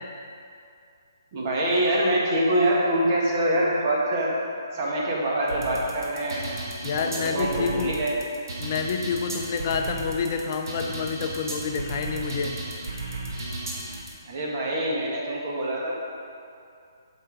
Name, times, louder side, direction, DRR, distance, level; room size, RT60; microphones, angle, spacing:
voice 1, 1.3-4.3 4.7-6.5 7.0-8.2 14.2-15.9, right 1 dB, 40° right, -4 dB, 1.8 m, -25 dB
sound 1, 5.5-14.1, right 2 dB, 65° right, 1.6 m, -34 dB
voice 2, 6.8-8.0 8.6-12.6, left 5 dB, 40° left, 4 dB, 0.6 m, -28 dB
9.1 x 5.5 x 4.0 m, 2.5 s
hypercardioid pair, 150°, 2 cm